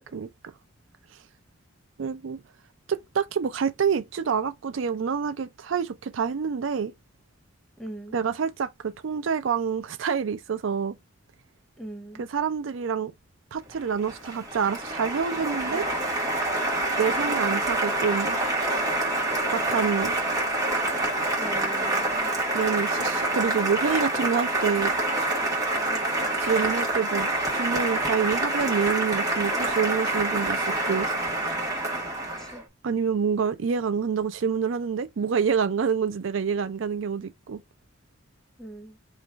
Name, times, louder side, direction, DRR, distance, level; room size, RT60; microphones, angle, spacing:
voice 1, 2.0-2.4 2.9-6.9 8.1-11.0 12.2-13.1 13.5-15.8 17.0-18.4 19.5-20.2 22.5-24.9 26.4-31.1 32.8-37.6, right 6 dB, 75° right, 0.4 m, -27 dB
voice 2, 7.8-8.2 11.8-12.3 21.4-22.4 25.9-26.2 32.4-32.6 38.6-39.0, right 1 dB, ahead, 0.8 m, -41 dB
Applause, 13.7-32.6, right 2 dB, 20° right, 1.3 m, -27 dB
3.0 x 2.4 x 4.3 m
head